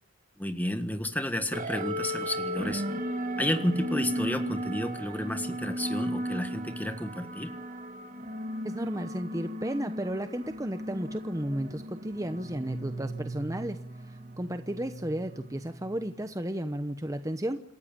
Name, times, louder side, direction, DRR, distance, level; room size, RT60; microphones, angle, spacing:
voice 1, 0.4-2.8 3.4-7.5, left 1 dB, 10° left, 8 dB, 1.5 m, -31 dB
sound 1, 1.5-16.3, equal, 35° right, 1.9 m, -36 dB
voice 2, 8.6-13.8 14.1-17.6, right 1 dB, 15° right, 9 dB, 0.9 m, -33 dB
27.5 x 14.5 x 8.9 m, 0.64 s
head